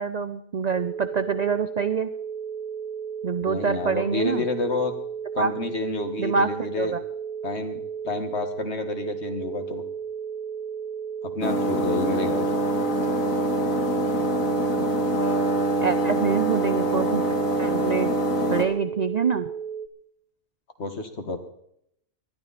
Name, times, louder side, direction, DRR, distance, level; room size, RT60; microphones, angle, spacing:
voice 1, 0.0-2.1 3.2-4.4 5.4-5.5 6.2-7.0 14.5-14.9 15.8-17.2 17.6-18.1 18.5-19.5, right 6 dB, 50° right, 11 dB, 0.5 m, -26 dB
sound 1, 0.7-19.9, right 7 dB, 80° right, 1.7 m, -34 dB
voice 2, 3.4-4.9 5.3-7.0 7.4-9.8 11.2-12.5 20.8-21.4, left 3 dB, 50° left, 6 dB, 1.8 m, -29 dB
sound 2, 11.4-18.6, right 1 dB, 75° left, 2.2 m, -24 dB
20.0 x 12.0 x 4.2 m, 0.74 s
omnidirectional pair, 1.4 m